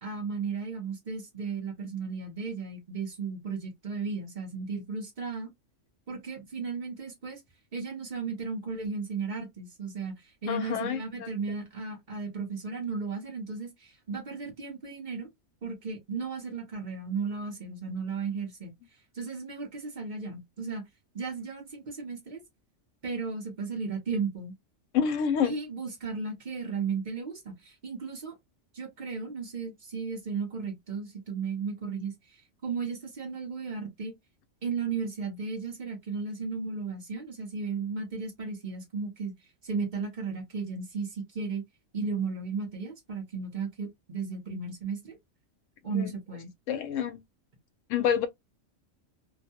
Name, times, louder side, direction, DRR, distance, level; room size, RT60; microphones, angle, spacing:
voice 1, 0.0-5.5 6.1-7.4 7.7-15.3 15.6-18.7 19.1-20.8 21.1-22.4 23.0-24.5 25.4-28.4 28.7-32.4 32.6-34.1 34.6-39.3 39.6-41.6 41.9-45.2 45.8-46.5, right 5 dB, 40° right, 0.9 m, -35 dB
voice 2, 10.5-11.3 24.9-25.5 45.9-46.1 46.7-47.2 47.9-48.3, left 8 dB, 90° left, 1.0 m, -28 dB
2.6 x 2.2 x 2.7 m
omnidirectional pair, 1.3 m